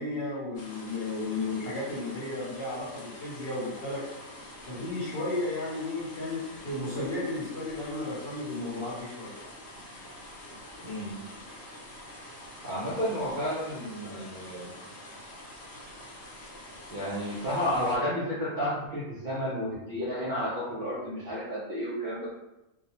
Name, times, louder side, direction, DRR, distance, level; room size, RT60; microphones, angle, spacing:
voice 1, 0.0-4.0 4.7-9.3, left 2 dB, 50° left, -7 dB, 1.0 m, -33 dB
sound 1, 0.6-18.0, left 1 dB, 75° left, 1.0 m, -46 dB
voice 2, 10.8-11.1 12.6-14.7 16.9-22.3, equal, 50° right, -9 dB, 0.6 m, -31 dB
2.5 x 2.1 x 2.9 m, 0.96 s
omnidirectional pair, 1.4 m